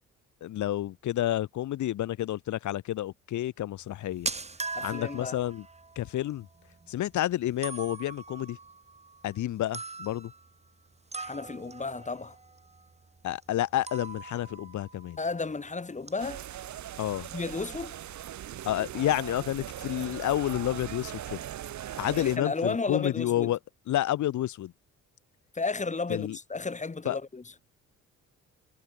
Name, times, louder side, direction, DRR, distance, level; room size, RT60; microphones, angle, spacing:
voice 1, 0.4-4.3 4.8-5.6 5.9-6.5 6.9-8.6 9.2-10.3 13.2-15.2 17.0-17.3 18.6-21.4 21.9-23.6 23.9-24.7 26.1-26.4 27.0-27.2, left 13 dB, 70° left, 1.3 m, -30 dB
sound 1, 3.8-15.7 16.0-16.4 16.7-16.8 17.4-17.5 17.7-18.3, right 3 dB, 20° right, 2.7 m, -42 dB
voice 2, 4.7-5.4 11.2-12.4 15.2-16.4 17.3-18.0 22.1-23.5 25.5-27.4, left 4 dB, 25° left, 4.4 m, -33 dB
sound 2, 16.2-22.4, right 11 dB, 70° right, 2.2 m, -40 dB
cardioid pair, 90°, 30 cm